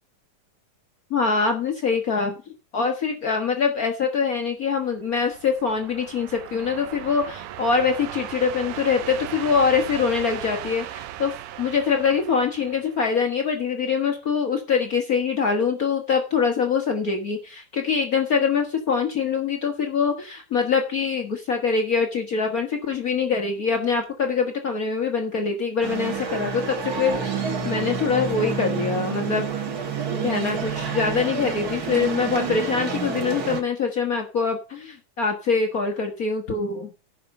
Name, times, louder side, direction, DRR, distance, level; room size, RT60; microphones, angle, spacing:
voice 1, 1.1-2.3 2.7-29.4 30.2-36.9, left 5 dB, 90° left, 4 dB, 0.7 m, -24 dB
sound 1, 5.0-13.5, right 12 dB, 75° right, 2.2 m, -37 dB
sound 2, 25.8-33.6, right 5 dB, 40° right, 1.4 m, -28 dB
15.0 x 5.8 x 5.4 m, 0.32 s
omnidirectional pair, 3.7 m